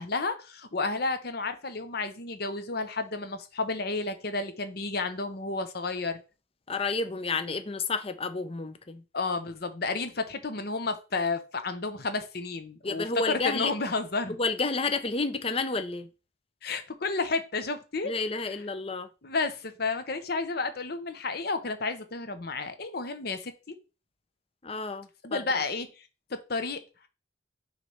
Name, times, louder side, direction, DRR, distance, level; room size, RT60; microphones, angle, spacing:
voice 1, 0.0-6.2 9.1-14.4 16.6-18.1 18.4-18.5 19.2-23.7 25.2-27.1, left 3 dB, 55° left, 0.9 m, -31 dB
voice 2, 6.7-9.0 12.8-13.7 14.3-16.1 18.0-19.1 24.6-25.6, left 3 dB, 30° left, 0.6 m, -30 dB
6.2 x 3.3 x 5.5 m
head